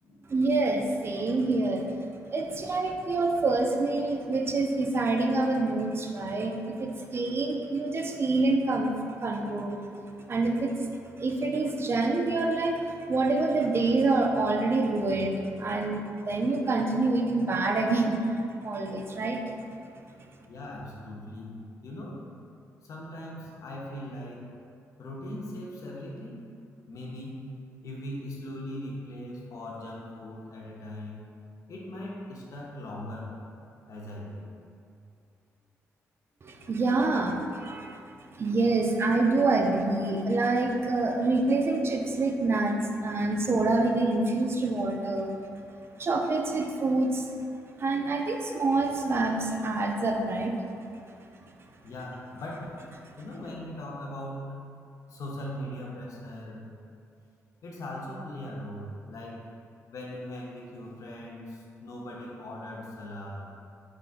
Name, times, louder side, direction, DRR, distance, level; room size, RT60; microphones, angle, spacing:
voice 1, 0.3-1.9 2.3-9.8 10.3-10.9 11.2-19.5 36.4-38.0 38.3-45.3 46.0-47.3 47.8-50.5, right 2 dB, 40° right, 3 dB, 0.4 m, -27 dB
voice 2, 20.5-22.2 22.8-24.5 25.0-26.4 26.9-27.5 27.8-31.3 31.7-33.4 33.9-34.5 51.8-52.7 53.2-54.6 55.1-56.7 57.6-59.5 59.9-63.4, left 1 dB, 65° left, -3 dB, 0.7 m, -39 dB
3.7 x 3.3 x 2.4 m, 2.4 s
cardioid pair, 70°, 6 cm